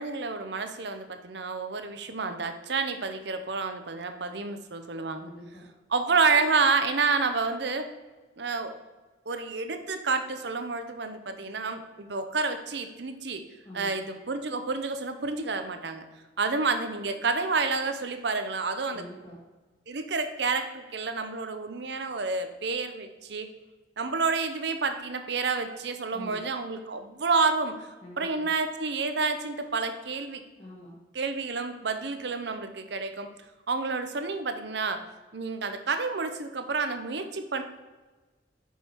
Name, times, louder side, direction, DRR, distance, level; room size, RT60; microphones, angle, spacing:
voice 1, 0.0-5.3 5.9-7.9 8.4-8.7 9.3-13.4 13.7-16.1 16.4-19.1 19.9-23.5 24.0-27.9 28.2-30.4 31.1-33.3 33.7-35.0 35.3-37.6, right 4 dB, 60° right, 8 dB, 0.7 m, -29 dB
voice 2, 5.2-5.6 13.6-14.0 18.9-19.4 26.1-26.4 28.0-28.5 30.6-31.0, equal, 25° left, -7 dB, 1.4 m, -45 dB
5.9 x 5.5 x 4.5 m, 1.2 s
head